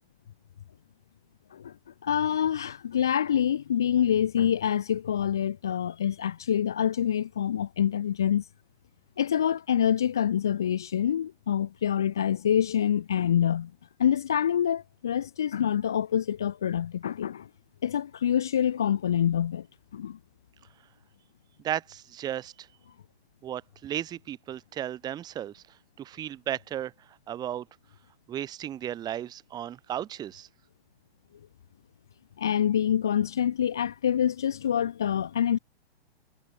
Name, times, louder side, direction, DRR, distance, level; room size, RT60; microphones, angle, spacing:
voice 1, 2.0-8.4 9.2-13.7 14.0-17.4 17.8-19.6 19.9-20.2 32.4-35.6, left 9 dB, 5° left, 0.3 m, -26 dB
voice 2, 21.6-22.5 23.4-25.6 26.0-26.9 27.3-27.7 28.3-30.5, right 11 dB, 10° right, 2.0 m, -34 dB
hypercardioid pair, 170°, 33 cm